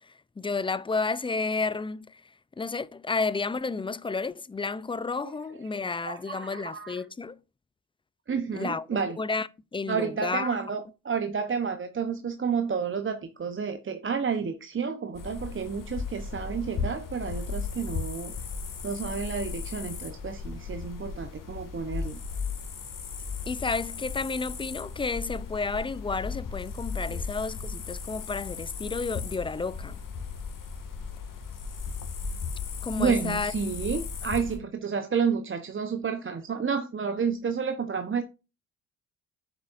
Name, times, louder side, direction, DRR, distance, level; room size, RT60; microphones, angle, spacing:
voice 1, 0.0-7.4 8.5-10.6 23.5-30.0 32.8-33.5, left 4 dB, 10° left, 0.5 m, -31 dB
voice 2, 6.0-7.0 8.3-9.2 9.9-18.4 18.8-22.2 27.1-27.2 33.0-38.2, right 6 dB, 30° right, 1.0 m, -30 dB
sound 1, 15.1-34.6, left 5 dB, 45° left, 2.2 m, -36 dB
9.5 x 7.0 x 2.6 m
hypercardioid pair, 50°, 43 cm